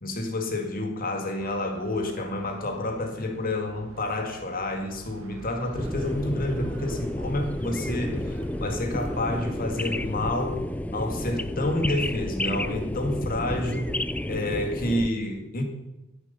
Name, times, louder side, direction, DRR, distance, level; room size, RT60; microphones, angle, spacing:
voice 1, 0.0-10.6 10.9-14.0 14.3-15.6, left 1 dB, 45° left, 1.9 m, -29 dB
sound 1, 1.4-10.2, right 2 dB, 80° right, 1.0 m, -45 dB
sound 2, 5.8-15.1, left 1 dB, 5° left, 0.4 m, -31 dB
13.0 x 7.9 x 6.8 m
head